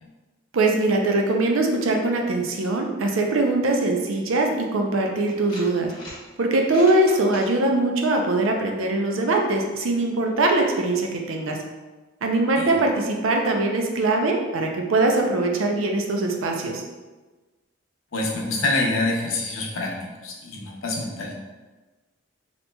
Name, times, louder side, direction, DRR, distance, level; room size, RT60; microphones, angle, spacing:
voice 1, 0.5-5.9 6.4-11.6 12.2-16.8, right 2 dB, 85° right, 2 dB, 0.5 m, -22 dB
sound 1, 5.3-6.2 6.6-7.5, left 1 dB, 20° left, 0.8 m, -41 dB
voice 2, 18.1-21.3, left 2 dB, 85° left, -1 dB, 0.7 m, -26 dB
4.0 x 2.9 x 2.2 m, 1.2 s
head